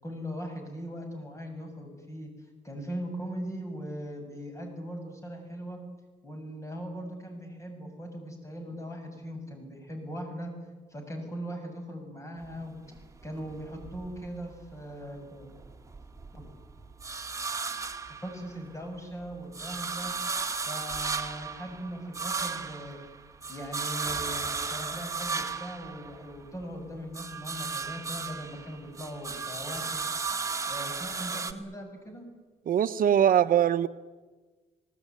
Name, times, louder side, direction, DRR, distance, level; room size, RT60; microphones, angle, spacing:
voice 1, 0.0-2.3 2.6-5.8 6.2-10.5 10.9-12.8 13.2-15.6 16.3-16.5 18.1-20.1 20.7-23.0 23.5-30.1 30.7-32.3, equal, 20° left, 5 dB, 7.4 m, -40 dB
sound 1, 12.4-14.8 15.2-18.8 19.2-26.6 27.0-31.5, right 4 dB, 20° right, 1.8 m, -35 dB
voice 2, 32.7-33.9, right 9 dB, 65° right, 11 dB, 0.8 m, -22 dB
28.5 x 18.5 x 9.6 m, 1.3 s
cardioid pair, 110°, 15 cm